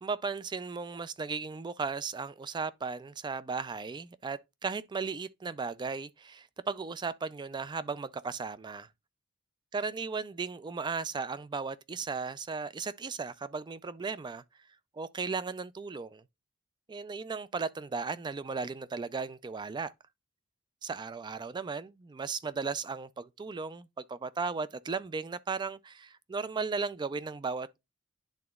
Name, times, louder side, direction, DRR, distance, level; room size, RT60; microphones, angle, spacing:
voice 1, 0.0-8.9 9.7-14.4 14.9-16.2 16.9-19.9 20.8-27.8, right 4 dB, 20° right, 0.3 m, -36 dB
10.5 x 3.8 x 2.3 m
head